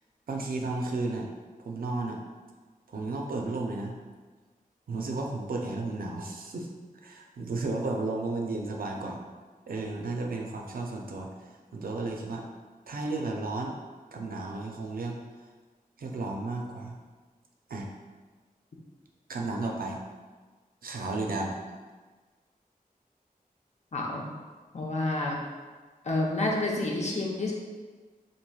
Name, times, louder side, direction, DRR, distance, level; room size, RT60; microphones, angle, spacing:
voice 1, 0.3-1.3 1.6-2.2 2.9-3.9 4.9-6.7 7.0-9.2 9.7-11.3 11.7-12.4 12.9-13.8 14.1-15.2 16.0-17.0 17.7-17.9 19.3-20.0 20.8-21.6, right 3 dB, 70° right, 1 dB, 0.4 m, -33 dB
voice 2, 23.9-24.3 24.7-25.4 26.0-27.5, left 2 dB, 45° left, -2 dB, 0.6 m, -29 dB
3.1 x 2.5 x 2.2 m, 1.4 s
cardioid pair, 45°, 16 cm